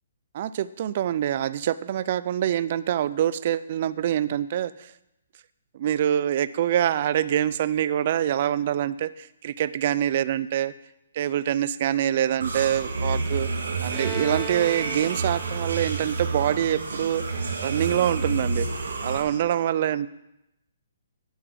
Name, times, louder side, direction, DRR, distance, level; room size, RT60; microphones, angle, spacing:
voice 1, 0.3-4.9 5.7-10.7 11.1-13.5 13.8-20.1, right 10 dB, 45° right, 17 dB, 0.3 m, -25 dB
sound 1, 12.4-19.2, right 3 dB, 85° right, 1.6 m, -29 dB
Bowed string instrument, 13.9-17.5, right 5 dB, 15° right, 1.4 m, -38 dB
11.0 x 6.1 x 4.6 m, 0.87 s
hypercardioid pair, 155°, 0 cm